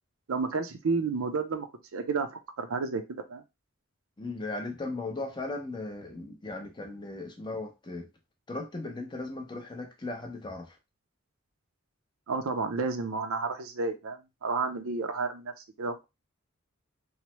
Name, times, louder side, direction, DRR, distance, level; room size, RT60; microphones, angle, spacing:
voice 1, 0.3-1.7 1.9-2.3 2.6-3.4 12.3-15.5 15.8-16.0, right 4 dB, 85° right, 0.5 m, -31 dB
voice 2, 4.2-8.1 8.5-10.8, left 2 dB, 20° left, 0.5 m, -37 dB
3.1 x 2.0 x 2.9 m
head